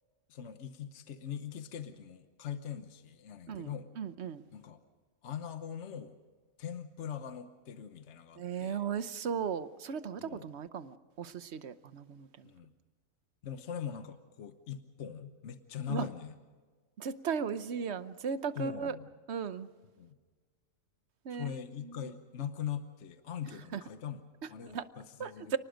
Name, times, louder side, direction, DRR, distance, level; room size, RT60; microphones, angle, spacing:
voice 1, 0.3-3.9 4.5-4.8 5.2-6.2 6.6-8.9 10.2-10.4 12.4-12.7 13.4-16.4 18.6-19.1 20.0-20.2 21.3-25.6, left 8 dB, 60° left, 9 dB, 1.2 m, -41 dB
voice 2, 3.5-4.4 8.4-12.5 15.9-16.1 17.0-19.0 19.3-19.7 21.2-21.5 23.7-23.8 24.7-24.8 25.2-25.6, right 6 dB, 55° right, 13 dB, 1.1 m, -36 dB
29.0 x 19.5 x 5.1 m, 1.5 s
omnidirectional pair, 1.4 m